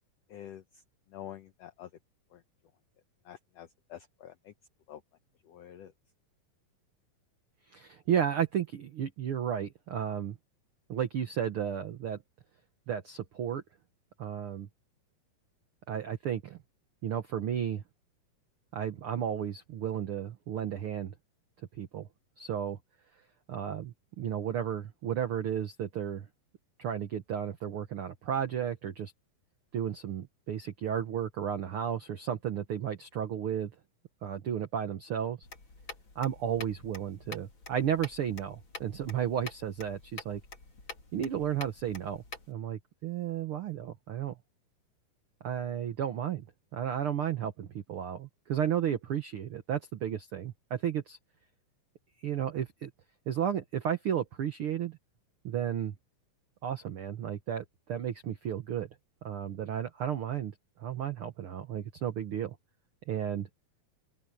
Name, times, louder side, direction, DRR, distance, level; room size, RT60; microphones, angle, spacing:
voice 1, 0.3-0.6 1.1-1.9 2.3-2.4 3.2-4.5 4.9-5.0 5.4-5.9, left 11 dB, 85° left, 1.4 m, -47 dB
voice 2, 7.7-10.4 10.9-12.2 12.9-13.6 14.2-14.7 15.9-16.6 17.0-17.8 18.7-21.1 21.8-22.1 22.4-22.8 23.5-26.3 26.8-29.1 29.7-33.7 34.2-35.4 36.1-40.4 41.1-44.3 45.4-46.5 46.7-51.2 52.2-52.9 53.3-55.0 55.4-56.0 56.6-58.9 59.2-60.5 60.8-62.5 63.1-63.5, right 9 dB, 80° right, 1.2 m, -33 dB
sound 1, 35.4-42.5, left 3 dB, 35° left, 3.9 m, -47 dB
open air
omnidirectional pair, 4.1 m